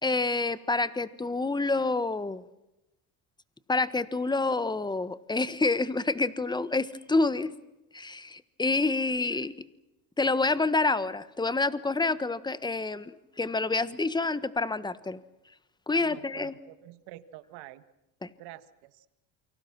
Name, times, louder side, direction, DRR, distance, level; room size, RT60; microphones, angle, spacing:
voice 1, 0.0-2.4 3.7-7.5 7.9-9.5 10.2-15.2 15.9-16.5 18.2-18.3, left 3 dB, 10° left, 15 dB, 1.4 m, -28 dB
voice 2, 15.9-17.8 18.4-19.1, right 15 dB, 80° right, 12 dB, 1.8 m, -47 dB
29.5 x 24.5 x 6.1 m, 0.92 s
cardioid pair, 110°, 40 cm